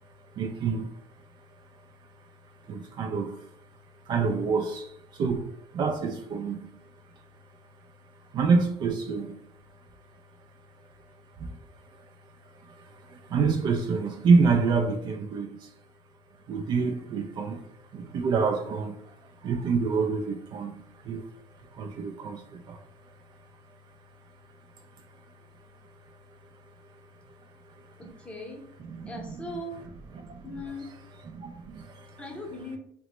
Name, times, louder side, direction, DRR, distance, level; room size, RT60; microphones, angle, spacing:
voice 1, 0.0-1.0 1.4-2.0 2.4-3.6 4.0-7.2 8.1-9.4 11.0-11.1 11.4-15.7 16.5-23.8 25.1-25.2 25.8-28.1 28.9-29.3 30.1-30.4 31.3-32.2, right 4 dB, 50° right, 0.4 m, -29 dB
voice 2, 28.0-28.6 29.0-29.8 30.4-30.9 32.2-32.8, left 1 dB, 10° left, 0.8 m, -39 dB
2.9 x 2.1 x 3.0 m
supercardioid pair, 100°, 10 cm